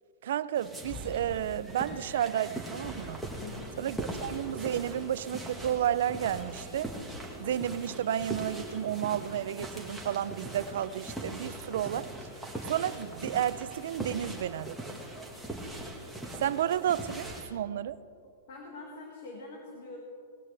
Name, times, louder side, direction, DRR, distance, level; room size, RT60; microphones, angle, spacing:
voice 1, 0.2-3.2 3.8-6.9 7.4-12.1 12.7-14.8 16.4-18.0, right 10 dB, 65° right, 16 dB, 0.5 m, -31 dB
sound 1, 0.5-17.5, right 1 dB, ahead, 1.5 m, -40 dB
voice 2, 3.4-3.8 18.5-20.0, left 3 dB, 65° left, 0 dB, 1.9 m, -44 dB
19.0 x 13.0 x 3.4 m, 2.5 s
supercardioid pair, 160°, 0 cm